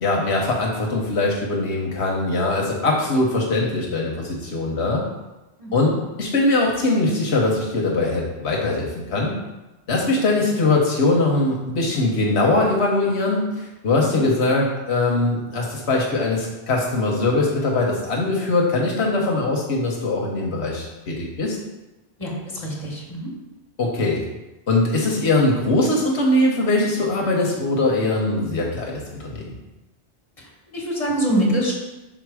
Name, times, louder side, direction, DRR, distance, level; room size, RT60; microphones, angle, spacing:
voice 1, 0.0-5.0 5.7-5.9 6.2-9.3 9.9-21.6 23.8-24.2 24.7-29.6, left 2 dB, 80° left, -1 dB, 1.2 m, -21 dB
voice 2, 5.6-6.0 14.1-14.2 22.2-23.3 30.7-31.7, right 1 dB, 35° left, -4 dB, 1.6 m, -24 dB
5.9 x 3.9 x 4.7 m, 1.1 s
omnidirectional pair, 1.1 m